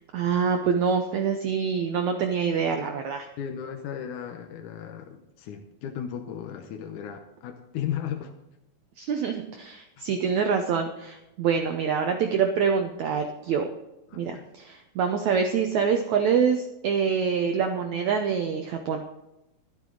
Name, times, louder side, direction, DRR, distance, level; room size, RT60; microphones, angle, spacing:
voice 1, 0.1-3.3 9.0-13.7 14.1-19.0, right 6 dB, 75° right, 5 dB, 1.7 m, -25 dB
voice 2, 3.4-8.3 10.0-10.1 14.1-14.4, left 9 dB, 70° left, 4 dB, 2.0 m, -35 dB
12.5 x 12.5 x 3.9 m, 0.93 s
omnidirectional pair, 4.4 m